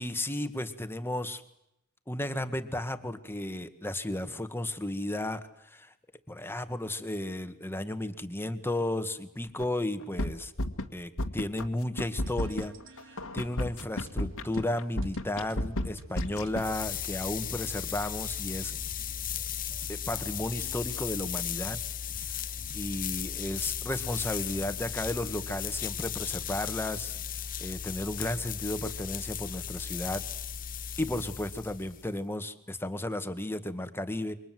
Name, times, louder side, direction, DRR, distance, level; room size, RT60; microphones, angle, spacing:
voice 1, 0.0-1.4 2.1-5.4 5.7-5.9 6.3-10.5 10.9-12.7 13.0-18.7 19.9-21.8 22.7-27.2 27.6-30.2 31.0-34.3, left 1 dB, 10° left, 9 dB, 1.9 m, -34 dB
sound 1, 9.6-9.7 10.0-10.9 11.2-11.7 12.0-16.8, left 1 dB, 65° left, 2.1 m, -32 dB
sound 2, 12.0-27.4, right 1 dB, 65° right, 2.9 m, -53 dB
sound 3, 16.4-32.2, left 9 dB, 40° left, 0.9 m, -36 dB
28.5 x 25.0 x 7.8 m, 0.81 s
head